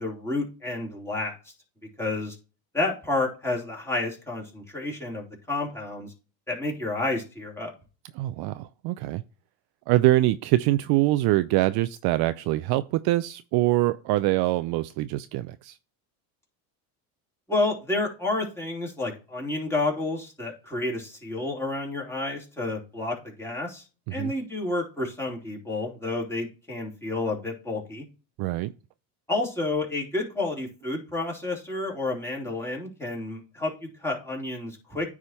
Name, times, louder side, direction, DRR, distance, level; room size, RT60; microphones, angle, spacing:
voice 1, 0.0-1.4 2.0-2.4 2.7-6.1 6.5-7.7 17.5-23.8 24.1-28.0 29.3-35.1, left 2 dB, 5° left, 2.9 m, -30 dB
voice 2, 8.1-9.2 9.9-15.8 24.1-24.3 28.4-28.7, right 17 dB, 55° right, 0.5 m, -24 dB
9.4 x 3.7 x 4.2 m
supercardioid pair, 90°, 46 cm